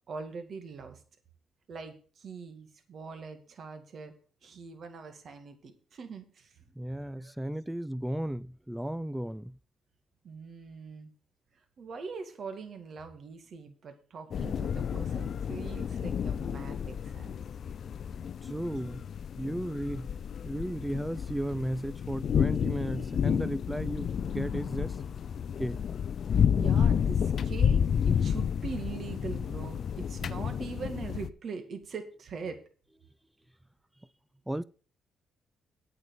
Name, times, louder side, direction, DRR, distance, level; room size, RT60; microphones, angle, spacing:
voice 1, 0.1-1.0 1.7-4.1 4.4-6.5 7.1-7.3 10.2-11.1 11.8-17.4 26.3-32.6, right 5 dB, 55° right, 2.0 m, -42 dB
voice 2, 6.8-9.6 18.4-19.0 19.4-20.1 20.4-25.0 25.6-25.8 34.5-34.6, right 1 dB, 5° right, 0.5 m, -35 dB
sound 1, 14.3-31.3, left 8 dB, 55° left, 0.5 m, -30 dB
8.8 x 6.9 x 6.5 m
cardioid pair, 90°, 0 cm